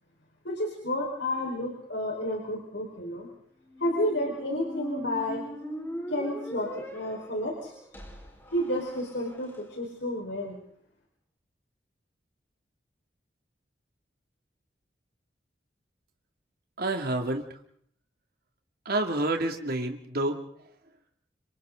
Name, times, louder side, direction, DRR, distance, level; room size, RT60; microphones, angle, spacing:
voice 1, 0.4-3.3 3.8-5.4 6.1-7.7 8.5-10.6, left 1 dB, 70° left, -1 dB, 4.8 m, -31 dB
Squeak, 3.6-9.6, right 1 dB, 10° left, 4.6 m, -41 dB
voice 2, 16.8-17.5 18.8-20.4, right 2 dB, 55° right, 4 dB, 2.6 m, -28 dB
29.5 x 26.5 x 3.9 m, 0.62 s
head